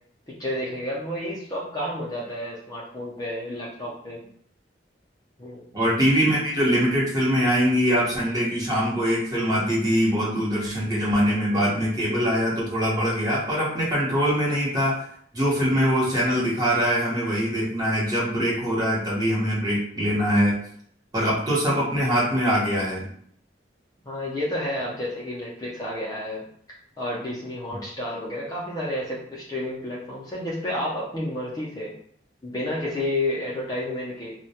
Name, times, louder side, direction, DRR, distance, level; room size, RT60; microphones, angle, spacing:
voice 1, 0.4-4.2 5.4-5.6 24.1-26.4 27.0-31.9 32.4-34.3, left 1 dB, 20° left, -5 dB, 0.4 m, -30 dB
voice 2, 5.7-15.0 15.3-20.5 21.1-23.1, equal, 20° right, -6 dB, 0.8 m, -23 dB
2.1 x 2.1 x 2.7 m, 0.63 s
head